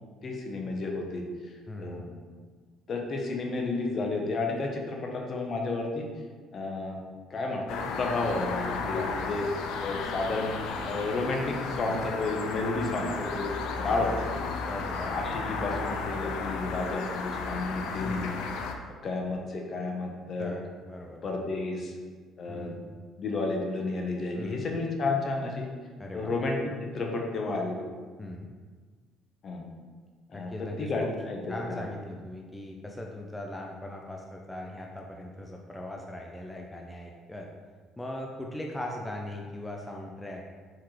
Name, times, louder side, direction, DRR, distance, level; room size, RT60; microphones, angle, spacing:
voice 1, 0.2-1.2 1.8-2.1 2.9-6.1 6.5-7.0 7.3-9.5 9.8-10.5 10.8-13.5 13.8-14.4 14.9-18.3 19.0-20.5 21.2-21.9 22.4-22.7 23.2-25.7 26.1-27.8 29.4-29.6 30.3-31.4 31.7-31.8, left 3 dB, 45° left, 1 dB, 0.8 m, -31 dB
voice 2, 1.7-2.1 8.8-9.3 12.8-13.2 14.6-15.1 18.0-18.4 20.4-21.4 22.5-22.9 24.3-24.7 26.0-26.4 28.2-28.5 30.3-31.1 31.5-37.5 38.0-40.4, left 1 dB, 10° left, 0 dB, 0.5 m, -39 dB
sound 1, 7.7-18.7, left 4 dB, 80° left, 0.4 m, -34 dB
4.6 x 3.7 x 3.1 m, 1.5 s
supercardioid pair, 80°, 0 cm